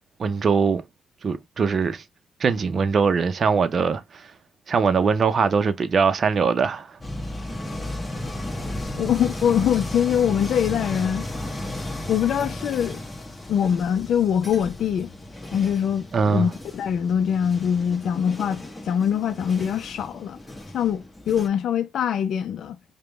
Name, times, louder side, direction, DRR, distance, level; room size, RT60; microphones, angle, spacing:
voice 1, 0.2-0.8 1.2-2.0 2.4-4.0 4.7-6.9 16.1-16.5, right 5 dB, 45° right, 0.6 m, -21 dB
sound 1, 7.0-21.5, left 1 dB, 10° left, 1.0 m, -34 dB
voice 2, 8.9-11.2 12.1-13.0 13.5-15.1 15.5-20.4 20.7-22.8, left 8 dB, 65° left, 0.5 m, -23 dB
5.0 x 2.2 x 3.3 m
cardioid pair, 90°, 0 cm